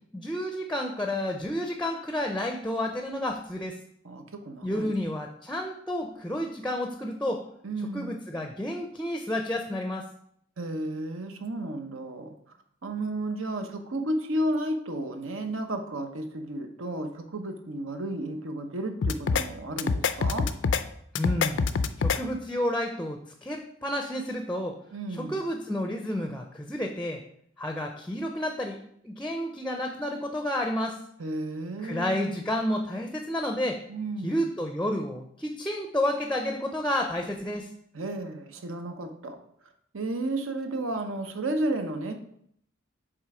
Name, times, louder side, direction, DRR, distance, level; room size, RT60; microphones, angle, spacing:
voice 1, 0.1-3.8 4.6-7.4 7.9-10.0 21.2-21.6 22.0-24.8 25.2-27.2 27.6-28.8 29.0-31.0 31.8-33.8 34.2-37.7, left 1 dB, 5° left, 4 dB, 0.5 m, -30 dB
voice 2, 4.0-4.9 7.6-8.1 10.6-12.3 12.8-20.5 24.9-25.4 31.2-32.4 33.9-34.4 37.9-39.4 39.9-42.1, right 1 dB, 85° right, 6 dB, 0.9 m, -32 dB
sound 1, 19.0-19.4 19.8-20.8 21.2-22.2, left 5 dB, 65° left, 0.4 m, -25 dB
7.4 x 3.3 x 4.8 m, 0.68 s
head